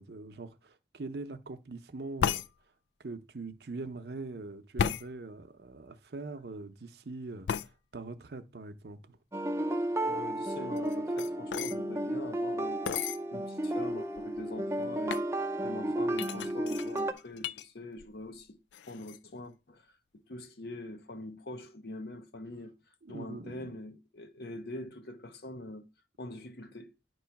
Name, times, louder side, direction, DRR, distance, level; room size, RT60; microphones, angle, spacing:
voice 1, 0.0-2.4 3.0-9.2 23.0-23.7, right 3 dB, 65° right, 0.7 m, -43 dB
sound 1, 2.2-2.5 4.8-5.1 7.5-7.7 10.8-11.8 12.9-13.2 13.9-14.0 14.2-14.6 15.1-15.3 16.2-17.7 18.0-18.4 18.7-19.2, left 8 dB, 90° left, 0.3 m, -33 dB
sound 2, 9.3-17.1, right 1 dB, 15° right, 0.5 m, -33 dB
voice 2, 10.1-15.3 15.6-22.7 23.1-25.9 26.2-26.9, left 2 dB, 60° left, 0.8 m, -44 dB
9.2 x 3.1 x 5.8 m
head